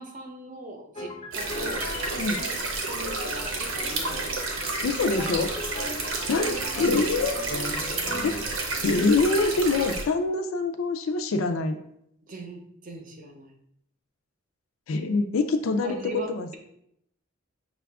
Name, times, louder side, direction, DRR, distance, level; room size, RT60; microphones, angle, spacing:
voice 1, 0.0-2.5 2.9-4.3 6.8-7.2 12.3-13.5 15.8-16.6, right 1 dB, 40° right, 3 dB, 0.7 m, -40 dB
sound 1, 0.9-8.4, left 1 dB, 30° left, 0.5 m, -38 dB
sound 2, 1.3-10.0, right 3 dB, 80° right, 0.8 m, -31 dB
voice 2, 4.8-5.5 6.3-7.4 8.1-8.4 8.8-11.8 14.9-16.6, left 3 dB, 75° left, 7 dB, 0.4 m, -25 dB
5.6 x 2.4 x 3.4 m, 0.74 s
head